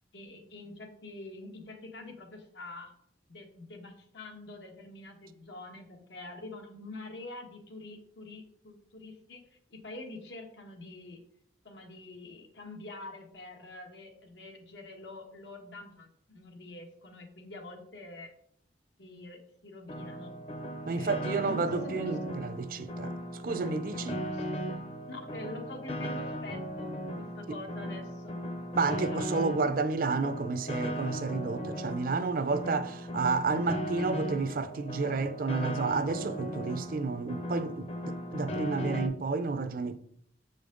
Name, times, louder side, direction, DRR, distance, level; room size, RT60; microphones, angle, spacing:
voice 1, 0.1-2.9 3.3-9.4 9.7-11.2 11.6-18.3 19.0-20.3 20.9-22.2 22.7-22.8 24.0-24.6 25.1-28.4 29.1-29.4 32.5-33.7, left 2 dB, 85° left, 1.4 m, -46 dB
Piano, 19.9-39.1, equal, 35° left, 0.6 m, -37 dB
voice 2, 20.9-23.1 23.4-24.2 28.8-40.0, right 4 dB, 50° right, 0.4 m, -31 dB
7.2 x 5.2 x 3.8 m
head